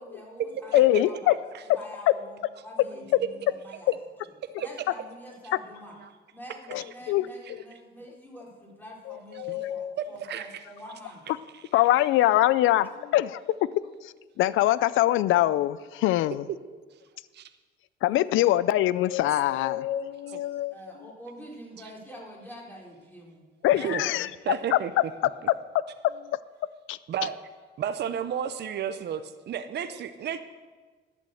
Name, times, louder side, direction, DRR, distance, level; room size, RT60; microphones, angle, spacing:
voice 1, 0.0-1.3 1.6-3.9 4.2-4.3 4.6-6.0 6.3-11.2 18.0-18.5 20.5-23.4 23.8-24.5, equal, 10° left, -2 dB, 3.9 m, -46 dB
voice 2, 0.7-1.3 6.7-7.3 9.4-9.9 11.7-13.7 14.0-16.5 18.0-20.8 23.6-24.3 24.7-25.0 26.9-27.0, left 14 dB, 85° left, 18 dB, 0.5 m, -23 dB
voice 3, 10.0-10.5 11.5-11.6 17.3-17.5 20.3-20.4 23.8-24.1 24.4-24.9 27.1-27.4 27.8-30.4, right 9 dB, 60° right, 10 dB, 0.7 m, -32 dB
11.5 x 8.6 x 7.8 m, 1.4 s
cardioid pair, 90°, 20 cm